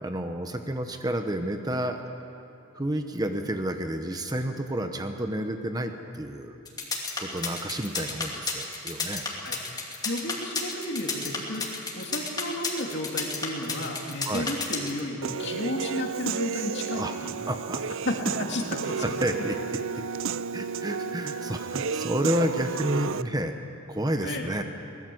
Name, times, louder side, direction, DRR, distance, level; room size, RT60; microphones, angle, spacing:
voice 1, 0.0-2.0 2.7-6.6 7.2-9.3 14.2-14.5 16.9-17.2 17.5-17.8 19.0-20.0 20.5-23.5 23.9-24.6, right 1 dB, 20° right, 6 dB, 0.9 m, -30 dB
sound 1, 6.7-15.0, left 4 dB, 20° left, 2.9 m, -31 dB
voice 2, 9.4-17.4 18.0-19.1 24.2-24.5, left 1 dB, 55° left, 1 dB, 2.7 m, -33 dB
Human voice / Piano, 15.2-23.2, right 6 dB, 60° right, 0.5 m, -32 dB
24.0 x 20.0 x 7.8 m, 2.8 s
head